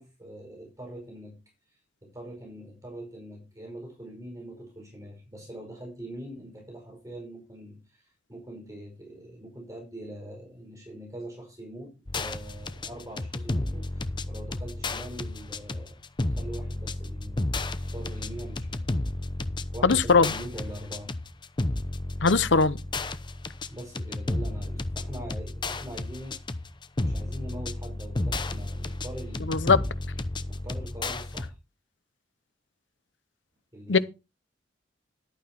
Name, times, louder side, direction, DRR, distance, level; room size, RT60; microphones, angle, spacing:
voice 1, 0.0-1.4 2.0-17.4 17.8-18.9 19.7-21.2 23.7-26.4 27.0-29.8 30.5-31.5 33.7-34.0, right 1 dB, 20° right, 5.0 m, -43 dB
sound 1, 12.1-31.5, left 2 dB, 25° left, 0.8 m, -32 dB
voice 2, 19.8-20.3 22.2-22.8 29.5-29.8 33.9-34.0, left 4 dB, 90° left, 0.9 m, -20 dB
11.5 x 9.0 x 4.4 m
head